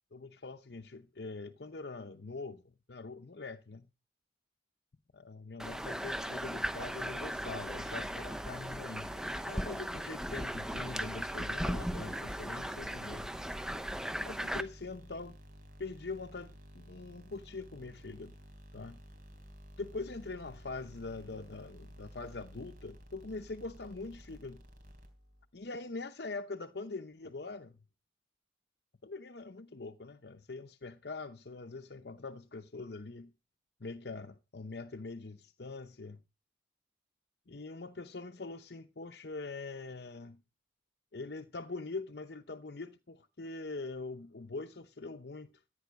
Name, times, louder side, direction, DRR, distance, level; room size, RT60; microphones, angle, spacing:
voice 1, 0.1-3.9 5.1-9.1 9.5-13.3 14.2-15.4 15.8-18.3 18.7-19.0 19.8-24.6 25.5-27.8 29.0-33.3 33.8-36.2 37.5-40.4 41.1-45.5, left 3 dB, 60° left, 0.8 m, -43 dB
sound 1, 5.6-14.6, equal, 5° right, 0.8 m, -37 dB
sound 2, 6.7-25.5, equal, 50° right, 3.8 m, -53 dB
15.0 x 9.3 x 5.2 m
head